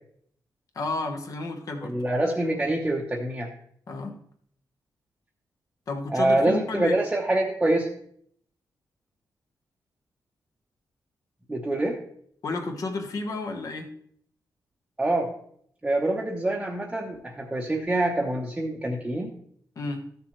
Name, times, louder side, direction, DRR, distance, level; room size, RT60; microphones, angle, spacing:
voice 1, 0.7-1.9 3.9-4.1 5.9-7.0 12.4-13.9 19.8-20.0, left 3 dB, 50° left, 4 dB, 1.3 m, -31 dB
voice 2, 1.8-3.5 6.1-7.9 11.5-12.0 15.0-15.3 15.8-19.3, right 1 dB, 10° right, -2 dB, 0.9 m, -25 dB
13.0 x 7.0 x 3.3 m, 0.66 s
wide cardioid pair, 160°, 7 cm